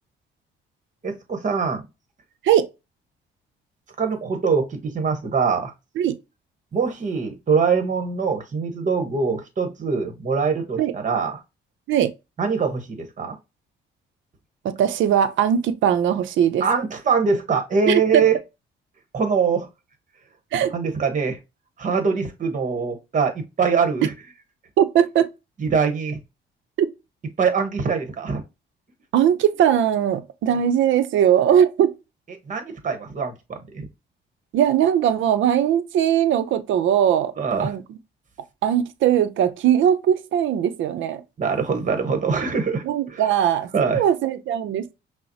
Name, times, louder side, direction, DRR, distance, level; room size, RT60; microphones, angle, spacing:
voice 1, 1.0-1.8 4.0-5.7 6.7-11.4 12.4-13.4 16.6-18.4 19.1-19.7 20.7-21.4 21.8-24.1 25.6-26.2 27.4-28.4 32.5-33.9 37.4-37.7 41.4-43.3 43.7-44.0, right 5 dB, 40° right, 1.1 m, -23 dB
voice 2, 14.6-16.7 17.9-18.2 20.5-20.7 24.8-25.3 29.1-31.9 34.5-37.3 37.6-37.8 38.6-41.2 42.8-44.9, right 9 dB, 75° right, 0.6 m, -20 dB
5.6 x 2.1 x 2.7 m
cardioid pair, 90°, 20 cm